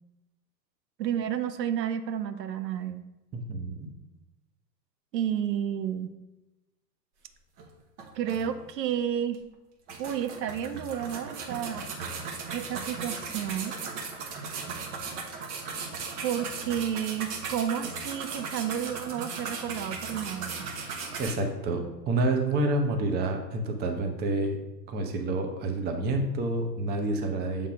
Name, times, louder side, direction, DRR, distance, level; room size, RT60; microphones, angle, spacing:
voice 1, 1.0-3.0 5.1-6.1 8.1-9.4 10.0-11.9 12.5-13.8 14.2-14.5 16.2-20.6, right 9 dB, 75° right, 10 dB, 0.7 m, -31 dB
voice 2, 3.3-3.9 21.2-24.6 24.9-27.7, right 2 dB, 20° right, 4 dB, 0.7 m, -28 dB
sound 1, 7.6-7.7 8.0-8.9 9.3-9.4 9.9-21.3, right 4 dB, 45° right, 1.2 m, -37 dB
6.7 x 3.6 x 5.0 m, 1.0 s
hypercardioid pair, 100°, 50 cm